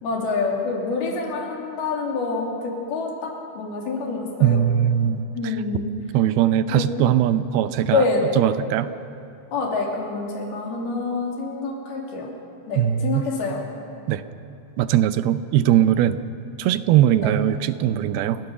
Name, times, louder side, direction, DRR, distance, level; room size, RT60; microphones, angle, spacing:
voice 1, 0.0-4.7 5.3-5.9 6.7-7.0 7.9-8.2 9.5-12.3 12.7-13.6 17.2-17.4, left 4 dB, 80° left, -1 dB, 4.9 m, -26 dB
voice 2, 4.4-5.6 6.1-8.0 8.4-8.9 12.8-13.3 14.1-14.2 14.8-16.2 16.6-18.4, right 11 dB, 85° right, 12 dB, 2.6 m, -20 dB
29.0 x 15.0 x 6.9 m, 2.7 s
omnidirectional pair, 4.4 m